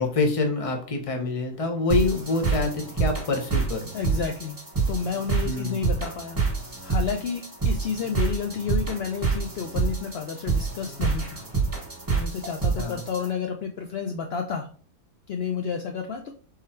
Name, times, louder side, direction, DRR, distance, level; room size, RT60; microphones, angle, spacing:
voice 1, 0.0-3.9 5.4-5.8 12.8-13.0, left 3 dB, 30° left, 4 dB, 0.6 m, -26 dB
sound 1, 1.9-13.3, right 4 dB, 15° right, 1.0 m, -27 dB
voice 2, 3.9-4.6 4.9-6.4 6.8-11.4 12.1-14.7 15.3-16.3, left 6 dB, 70° left, 5 dB, 0.6 m, -30 dB
3.7 x 3.3 x 4.2 m, 0.43 s
omnidirectional pair, 1.6 m